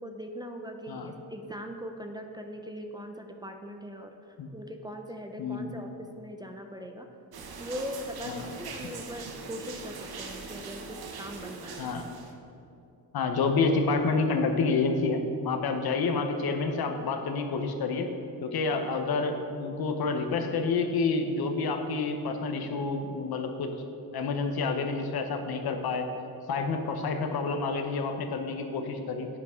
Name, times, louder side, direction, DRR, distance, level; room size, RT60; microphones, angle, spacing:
voice 1, 0.0-4.1 4.5-5.9 6.2-7.1 7.6-11.9, equal, 10° right, 4 dB, 0.5 m, -40 dB
voice 2, 5.4-5.7 8.3-8.5 8.8-8.9 11.8-12.0 13.1-18.1 18.4-23.7 24.1-26.1 26.5-29.3, left 4 dB, 75° left, 5 dB, 0.9 m, -29 dB
sound 1, 7.3-12.3, right 4 dB, 75° right, 0.9 m, -42 dB
10.0 x 8.6 x 3.7 m, 2.7 s
wide cardioid pair, 130°, 38 cm